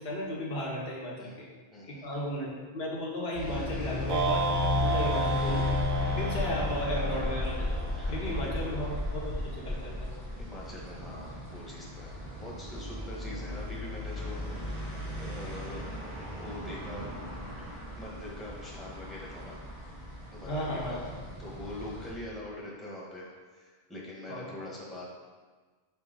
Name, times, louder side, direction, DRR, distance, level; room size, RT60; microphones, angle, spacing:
voice 1, 0.0-1.5 1.9-4.5 4.8-5.8 6.2-7.9 8.1-8.9 9.1-10.1 20.5-21.1 24.3-24.6, left 1 dB, 70° left, -4 dB, 1.3 m, -35 dB
voice 2, 1.7-2.1 7.9-8.6 10.4-14.4 14.7-15.8 16.4-17.0 17.6-19.6 20.3-21.0 21.4-25.1, left 1 dB, ahead, -5 dB, 1.1 m, -43 dB
sound 1, 3.3-22.1, left 2 dB, 50° right, 1.8 m, -35 dB
sound 2, 4.1-8.4, right 4 dB, 75° right, 0.8 m, -32 dB
5.7 x 4.5 x 3.7 m, 1.4 s
omnidirectional pair, 1.1 m